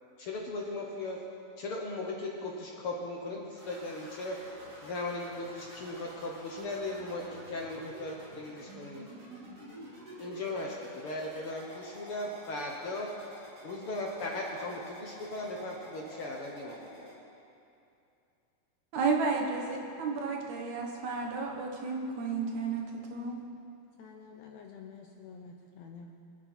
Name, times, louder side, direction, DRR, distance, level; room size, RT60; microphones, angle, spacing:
voice 1, 0.2-1.2 1.6-4.4 4.8-9.1 10.2-13.1 13.6-17.1, left 2 dB, 55° left, -1 dB, 1.7 m, -38 dB
sound 1, 3.6-17.2, right 1 dB, 25° right, 2.6 m, -49 dB
voice 2, 18.9-23.4, right 4 dB, 65° right, 1 dB, 2.5 m, -32 dB
voice 3, 24.0-26.1, left 5 dB, 75° left, 3 dB, 1.7 m, -49 dB
23.5 x 9.7 x 4.5 m, 2.6 s
omnidirectional pair, 3.7 m